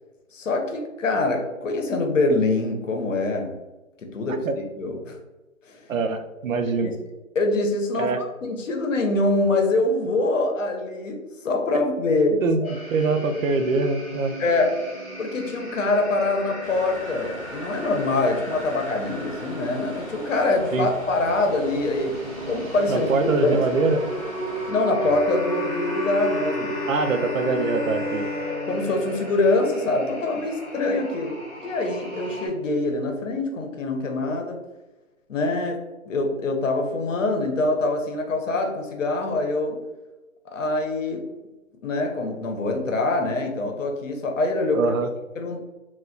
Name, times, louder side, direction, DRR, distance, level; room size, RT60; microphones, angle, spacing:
voice 1, 0.3-3.5 4.0-5.2 5.7-5.8 6.8-7.0 7.3-12.7 14.4-14.7 15.2-22.2 22.4-23.1 23.4-23.6 24.7-26.8 28.7-31.4 31.6-34.6 35.3-35.8 36.1-39.8 40.5-41.2 41.8-44.9 45.4-45.6, left 2 dB, 65° left, 3 dB, 0.7 m, -24 dB
voice 2, 5.9-7.0 7.9-8.2 12.4-12.6 12.9-14.4 20.7-20.9 22.9-24.0 26.9-28.3 44.7-45.1, right 3 dB, 70° right, 7 dB, 0.5 m, -23 dB
sound 1, 12.6-32.5, right 1 dB, 10° left, 0.7 m, -36 dB
sound 2, 16.6-24.7, equal, 25° right, 0.6 m, -40 dB
Bowed string instrument, 25.0-30.5, left 2 dB, 40° left, 0.5 m, -34 dB
2.2 x 2.2 x 3.6 m, 1.1 s
hypercardioid pair, 160°, 41 cm